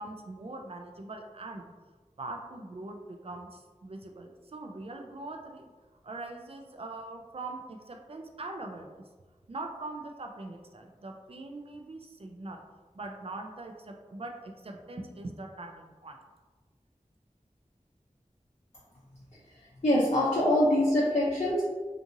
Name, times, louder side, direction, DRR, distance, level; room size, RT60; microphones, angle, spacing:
voice 1, 0.0-1.6 2.2-5.7 6.0-9.0 9.5-12.6 12.9-16.2, right 2 dB, 45° right, 3 dB, 0.4 m, -42 dB
voice 2, 19.8-21.6, left 1 dB, 55° left, -7 dB, 0.5 m, -24 dB
2.7 x 2.5 x 2.6 m, 1.3 s
wide cardioid pair, 45°, 14 cm